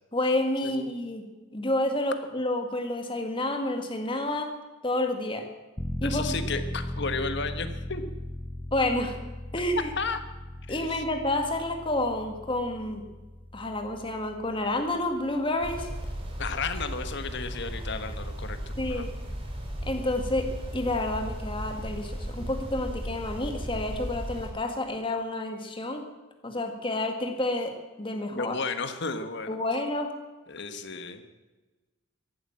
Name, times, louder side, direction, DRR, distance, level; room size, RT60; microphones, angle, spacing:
voice 1, 0.1-1.2 1.5-4.5 4.8-5.5 6.0-6.4 8.7-9.2 9.5-9.9 10.7-13.0 13.5-15.9 18.8-19.1 19.8-20.5 20.7-26.0 26.4-28.5 29.5-30.1, left 1 dB, 25° left, 5 dB, 2.0 m, -29 dB
sound 1, 5.8-18.3 18.6-18.7, left 1 dB, 10° left, 0.5 m, -38 dB
voice 2, 6.0-8.0 9.8-10.2 10.7-11.0 16.4-19.1 28.3-29.6 30.5-31.2, left 4 dB, 55° left, 9 dB, 1.3 m, -33 dB
sound 2, 15.6-24.5, equal, 25° right, 3.0 m, -36 dB
14.5 x 12.0 x 7.5 m, 1.2 s
head